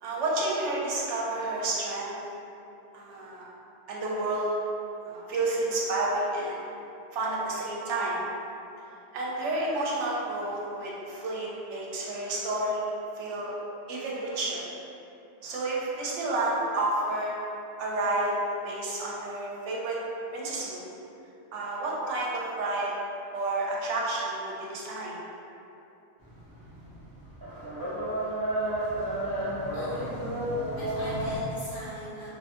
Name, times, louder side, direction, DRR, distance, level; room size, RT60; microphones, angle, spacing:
voice 1, 0.0-2.2 2.9-3.4 3.9-4.6 5.0-6.6 7.1-8.2 9.1-13.6 13.9-14.6 15.4-17.3 17.8-18.3 18.6-20.0 20.3-21.0 21.5-22.9 23.3-25.2, right 2 dB, 75° right, -5 dB, 0.9 m, -30 dB
sound 1, 26.2-31.4, right 1 dB, 30° right, 0.4 m, -31 dB
voice 2, 29.7-30.4 30.8-32.3, equal, 50° left, -11 dB, 1.0 m, -42 dB
2.5 x 2.5 x 2.4 m, 2.8 s
omnidirectional pair, 1.2 m